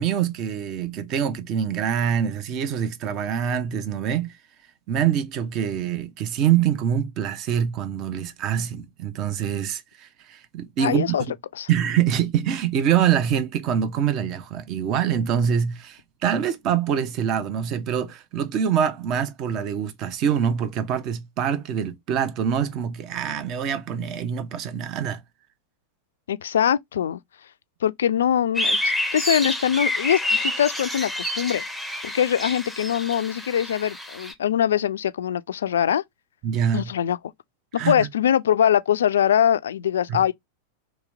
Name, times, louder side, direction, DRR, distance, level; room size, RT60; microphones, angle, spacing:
voice 1, 0.0-4.3 4.9-11.3 11.7-25.2 36.4-36.9 37.8-38.1 40.1-40.2, right 8 dB, 35° right, 0.7 m, -25 dB
voice 2, 10.8-11.2 11.5-11.7 26.3-27.2 27.8-31.6 32.0-36.0 36.7-37.2 37.7-40.3, left 9 dB, 65° left, 0.3 m, -22 dB
sound 1, 28.5-34.3, left 1 dB, ahead, 0.7 m, -28 dB
3.2 x 3.0 x 3.4 m
figure-of-eight pair, 90°, 0 cm